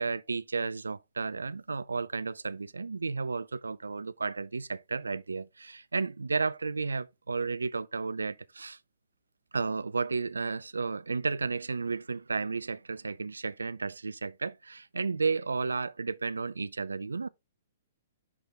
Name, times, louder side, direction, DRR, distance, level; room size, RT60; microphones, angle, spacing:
voice 1, 0.0-8.8 9.5-17.3, right 4 dB, 75° right, 0.4 m, -33 dB
6.5 x 5.9 x 3.4 m
figure-of-eight pair, 115°, 0 cm